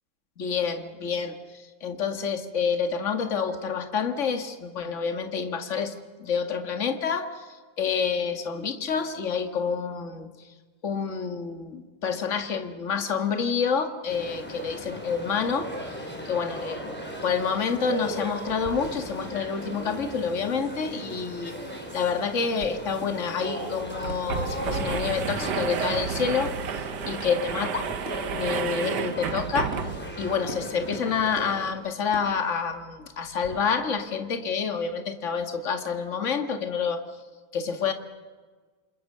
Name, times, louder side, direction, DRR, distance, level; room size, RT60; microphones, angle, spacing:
voice 1, 0.4-1.4 1.8-5.9 6.2-10.3 10.8-16.0 16.3-21.5 21.9-27.9 28.3-29.8 30.2-37.0 37.5-37.9, left 6 dB, 40° left, 7 dB, 2.2 m, -28 dB
sound 1, 14.1-31.7, equal, 5° left, 5.1 m, -38 dB
sound 2, 18.5-21.3 21.5-22.3 22.6-22.7 23.0-23.1 23.4-23.5 24.1-24.2 24.5-24.6 24.9-25.0 25.3-25.7 26.0-26.1 26.5-26.6 27.2-27.3 27.6-27.7 28.1-28.2 28.9-29.0 29.3-29.4 29.7-29.9 30.5-30.6 30.9-31.5 32.0-33.6, right 1 dB, 35° right, 5.1 m, -42 dB
sound 3, 22.6-22.7 23.0-23.1 23.8-30.2, right 7 dB, 65° right, 1.7 m, -31 dB
28.0 x 28.0 x 6.8 m, 1.4 s
omnidirectional pair, 2.0 m